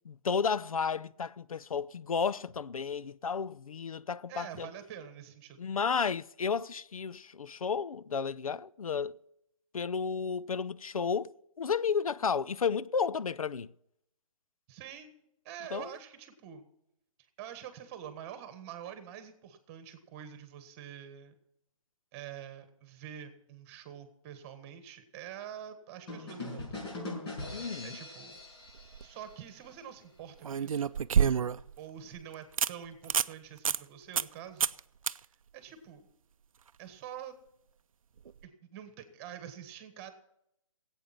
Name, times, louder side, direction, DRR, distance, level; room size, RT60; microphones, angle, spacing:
voice 1, 0.1-4.7 5.6-9.1 9.7-11.3 11.6-13.7 15.7-15.9 27.5-28.0, left 6 dB, 90° left, 0.5 m, -32 dB
voice 2, 4.3-5.6 14.7-16.7 17.4-21.3 22.1-27.0 27.8-28.4 29.0-30.9 31.8-34.7 35.5-36.1 36.8-37.3 38.4-40.1, right 9 dB, 25° right, 1.6 m, -46 dB
sound 1, 26.1-29.8, left 2 dB, 50° left, 6.0 m, -42 dB
sound 2, 28.7-29.0 30.4-31.7 32.2-32.3 32.6-32.7 33.0-33.3 33.7-33.8 34.2-34.3 34.6-34.8 35.1-35.2 38.3-38.4, right 7 dB, 75° right, 0.5 m, -28 dB
17.0 x 8.5 x 5.8 m
hypercardioid pair, 145°, 17 cm